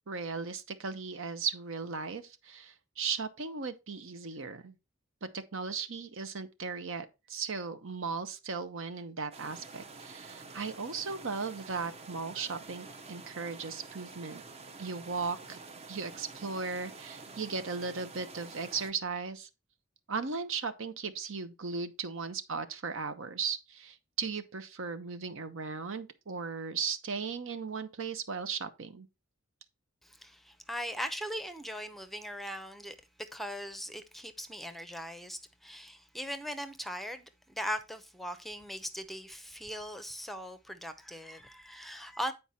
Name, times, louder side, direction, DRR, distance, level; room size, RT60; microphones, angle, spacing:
voice 1, 0.1-4.8 5.2-14.4 14.8-15.6 15.9-19.5 20.1-29.1, right 5 dB, 65° right, 0.9 m, -37 dB
sound 1, 9.3-18.9, right 4 dB, 30° right, 0.8 m, -48 dB
voice 2, 30.0-42.3, equal, ahead, 0.7 m, -40 dB
9.0 x 4.7 x 4.1 m
head